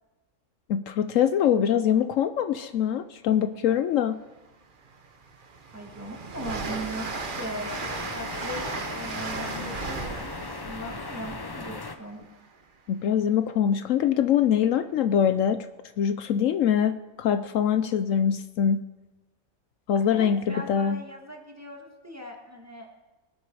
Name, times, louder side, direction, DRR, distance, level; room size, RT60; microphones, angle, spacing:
voice 1, 0.7-4.2 12.9-15.6 16.0-18.8 19.9-21.0, left 8 dB, 70° left, 11 dB, 0.9 m, -23 dB
Train, 4.3-4.4 4.8-12.6, right 4 dB, 40° right, 1.1 m, -36 dB
voice 2, 5.7-12.2 20.1-23.0, equal, 10° right, 0 dB, 2.0 m, -39 dB
sound 1, 6.6-12.0, left 3 dB, 25° left, 0.5 m, -38 dB
23.0 x 8.3 x 4.7 m, 1.1 s
omnidirectional pair, 1.4 m